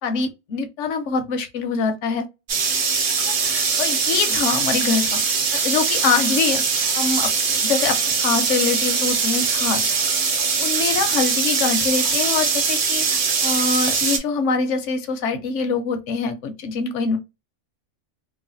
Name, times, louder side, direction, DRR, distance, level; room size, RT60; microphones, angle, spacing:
voice 1, 0.0-2.3 3.2-5.2 5.5-6.6 6.9-9.9 10.6-17.2, left 5 dB, 80° left, 1.0 m, -24 dB
sound 1, 2.5-14.2, right 5 dB, 50° right, 0.7 m, -21 dB
3.1 x 2.1 x 2.4 m
omnidirectional pair, 1.3 m